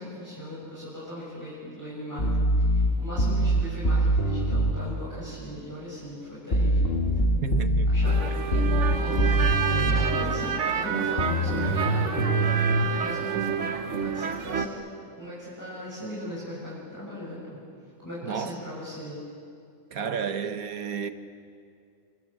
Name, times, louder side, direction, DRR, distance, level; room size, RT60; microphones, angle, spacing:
voice 1, 0.0-2.3 2.6-7.5 7.9-8.3 8.9-9.4 9.9-13.6 14.0-14.8 15.1-17.6 18.0-19.2, equal, 10° left, 7.4 m, -38 dB
sound 1, 2.2-4.8 6.5-10.1 11.2-12.8, right 1 dB, 45° left, 1.8 m, -23 dB
voice 2, 7.4-7.9 18.2-18.7 19.9-21.1, right 7 dB, 80° right, 1.6 m, -31 dB
sound 2, 8.0-14.7, right 6 dB, 55° right, 1.5 m, -28 dB
28.0 x 26.5 x 7.6 m
omnidirectional pair, 1.5 m